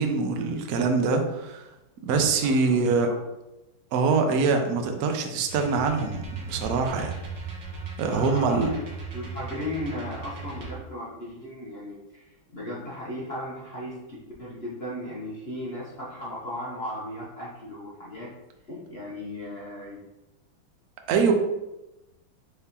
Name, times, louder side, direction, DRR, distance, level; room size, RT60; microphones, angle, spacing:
voice 1, 0.0-1.6 2.0-3.1 3.9-7.1 8.0-8.7 21.1-21.3, right 4 dB, 85° right, 4 dB, 0.8 m, -24 dB
voice 2, 2.4-2.8 3.1-3.2 8.1-8.8 9.1-18.3 18.7-20.0, left 1 dB, 75° left, -7 dB, 0.5 m, -36 dB
sound 1, 5.5-10.7, right 4 dB, 70° right, 1.5 m, -37 dB
4.6 x 3.4 x 2.8 m, 0.96 s
omnidirectional pair, 2.3 m